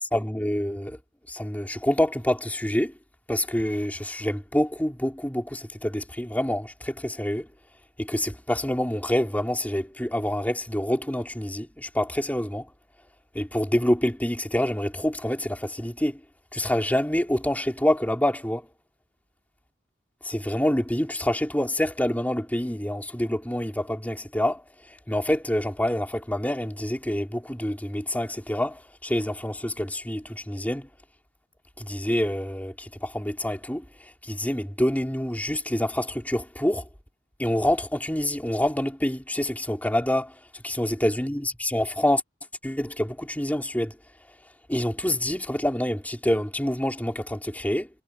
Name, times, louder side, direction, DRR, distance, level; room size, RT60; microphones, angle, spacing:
voice 1, 0.1-1.0 1.3-2.9 3.3-7.5 8.0-12.7 13.3-16.2 16.5-18.6 20.2-24.6 25.1-30.9 31.8-36.9 37.4-42.2 42.6-44.0 44.7-47.9, left 1 dB, 10° left, 3.2 m, -27 dB
head